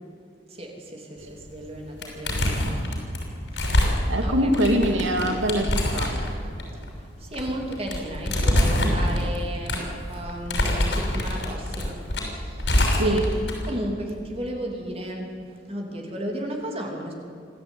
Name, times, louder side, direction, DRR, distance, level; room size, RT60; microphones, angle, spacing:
voice 1, 0.5-2.7 3.5-4.5 7.2-12.0 12.3-17.1, right 1 dB, 30° right, 1 dB, 3.1 m, -34 dB
sound 1, 1.4-1.7 2.0-13.7, left 1 dB, 70° left, 6.4 m, -25 dB
voice 2, 4.1-6.1 12.9-13.2, equal, 90° right, 5 dB, 2.4 m, -24 dB
25.5 x 15.5 x 9.3 m, 2.3 s
head